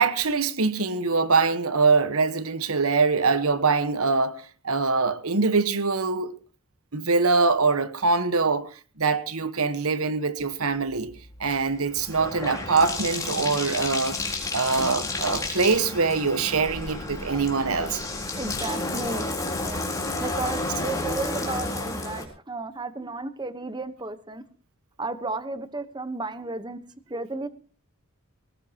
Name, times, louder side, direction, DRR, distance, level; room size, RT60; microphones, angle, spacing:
voice 1, 0.0-6.3 6.9-8.7 9.0-11.1 11.4-14.2 14.5-18.0, right 4 dB, 85° right, 1.3 m, -23 dB
Bathtub (filling or washing), 10.9-22.2, left 2 dB, 15° left, 3.8 m, -31 dB
voice 2, 18.4-19.3 19.6-19.8 20.2-24.4 25.0-26.8 27.1-27.5, right 2 dB, 20° right, 1.1 m, -33 dB
20.0 x 18.5 x 3.0 m
head